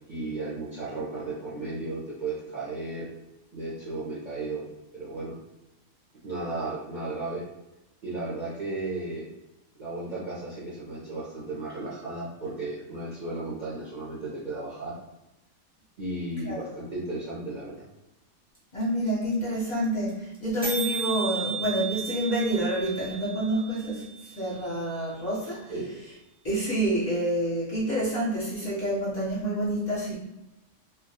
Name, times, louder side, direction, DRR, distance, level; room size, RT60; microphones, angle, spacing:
voice 1, 0.1-3.1 3.5-4.7 4.9-5.4 6.2-7.4 8.0-9.3 9.8-15.0 16.0-17.8 25.7-25.9, right 2 dB, 55° right, -8 dB, 0.5 m, -34 dB
sound 1, 18.5-18.6 18.8-18.9 19.1-19.3 19.6-19.7 19.8-20.1 20.3-20.4 20.6-24.6, right 5 dB, 5° right, 0.4 m, -35 dB
voice 2, 18.7-25.7 26.4-30.2, right 1 dB, 45° left, -8 dB, 0.6 m, -28 dB
2.2 x 2.2 x 2.7 m, 0.96 s
omnidirectional pair, 1.3 m